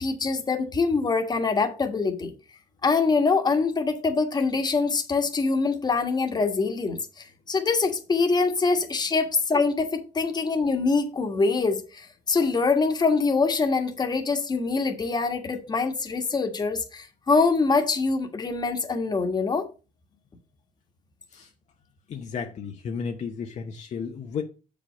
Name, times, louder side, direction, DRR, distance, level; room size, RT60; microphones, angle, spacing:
voice 1, 0.0-2.3 2.8-19.6, left 4 dB, 30° left, 1.5 m, -24 dB
voice 2, 22.1-24.4, left 6 dB, 50° left, 0.9 m, -33 dB
7.3 x 5.2 x 5.1 m
cardioid pair, 115°, 15 cm